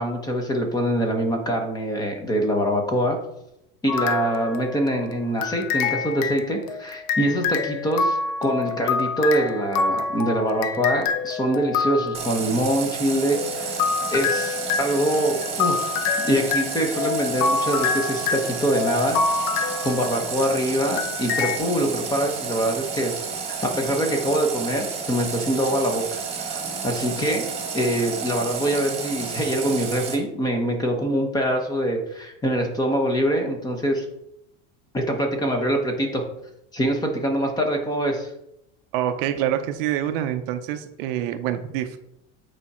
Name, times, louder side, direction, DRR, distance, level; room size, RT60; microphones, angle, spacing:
voice 1, 0.0-3.2 3.8-13.8 14.1-15.9 16.2-19.5 19.8-23.1 23.6-27.5 27.7-34.0 34.9-36.2 36.7-38.3, equal, 10° left, 3 dB, 1.0 m, -24 dB
sound 1, 3.9-5.0 5.4-12.3 13.3-20.5 21.0-21.6, left 5 dB, 45° left, 0.7 m, -26 dB
Water tap faucet, 12.1-30.2, right 6 dB, 20° right, 1.5 m, -31 dB
voice 2, 38.9-42.0, right 11 dB, 55° right, 9 dB, 0.7 m, -26 dB
8.5 x 4.8 x 4.2 m, 0.81 s
cardioid pair, 170°, 32 cm